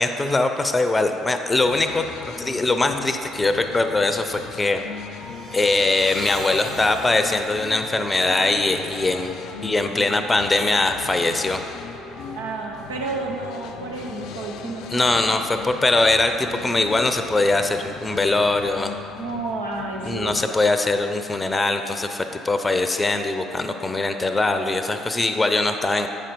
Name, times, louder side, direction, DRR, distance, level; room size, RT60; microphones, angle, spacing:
voice 1, 0.0-4.8 5.5-9.4 9.6-11.6 14.9-19.0 20.1-26.1, left 2 dB, 20° left, 7 dB, 0.6 m, -22 dB
sound 1, 1.6-20.4, left 9 dB, 60° left, 0.3 m, -39 dB
sound 2, 4.9-15.5, right 2 dB, 40° right, 1.5 m, -41 dB
voice 2, 12.4-15.1 19.2-20.6, right 3 dB, 80° right, -1 dB, 1.0 m, -31 dB
8.9 x 5.7 x 5.2 m, 2.8 s
hypercardioid pair, 55°, 0 cm